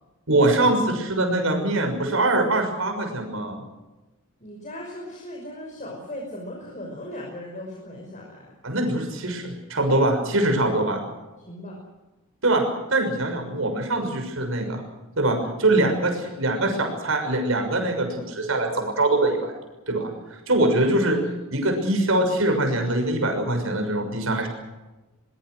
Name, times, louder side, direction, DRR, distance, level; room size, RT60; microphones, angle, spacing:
voice 1, 0.3-3.6 8.6-11.0 12.4-12.6 12.9-14.8 15.2-19.5 19.9-21.2 21.5-24.5, right 2 dB, 70° right, 4 dB, 6.3 m, -23 dB
voice 2, 4.4-8.5 11.5-11.8, left 1 dB, 35° left, -1 dB, 5.7 m, -37 dB
24.0 x 23.0 x 6.4 m, 1.1 s
head